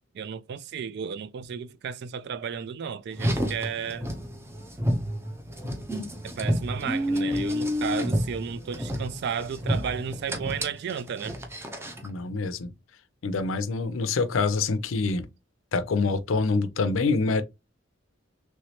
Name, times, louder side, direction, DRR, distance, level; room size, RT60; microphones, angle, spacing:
voice 1, 0.1-4.1 6.2-11.4, right 7 dB, 60° right, 0.3 m, -33 dB
Car, 3.1-12.1, equal, 15° right, 0.6 m, -30 dB
voice 2, 12.0-12.7 13.2-15.3 15.7-17.4, left 4 dB, 85° left, 0.5 m, -26 dB
3.2 x 3.1 x 2.8 m
head